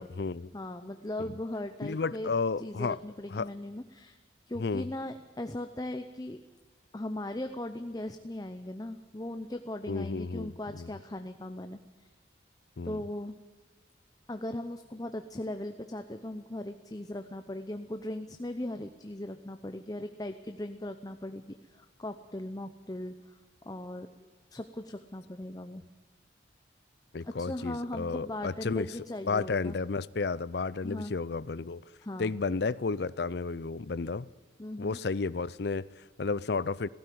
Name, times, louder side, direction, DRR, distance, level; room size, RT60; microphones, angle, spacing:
voice 1, 0.0-0.5 1.2-1.3 1.8-3.0 3.3-3.5 4.6-4.9 9.9-10.9 12.8-13.0 27.1-28.9 29.3-31.8 32.2-34.3 34.8-36.9, left 4 dB, 60° left, 0.5 m, -32 dB
voice 2, 0.5-2.3 2.6-4.2 4.5-6.4 6.9-11.8 12.8-13.4 14.3-25.8 27.2-29.8 30.8-31.1 32.0-32.3 34.6-35.0, left 1 dB, 20° left, 0.7 m, -38 dB
17.5 x 16.0 x 9.4 m
head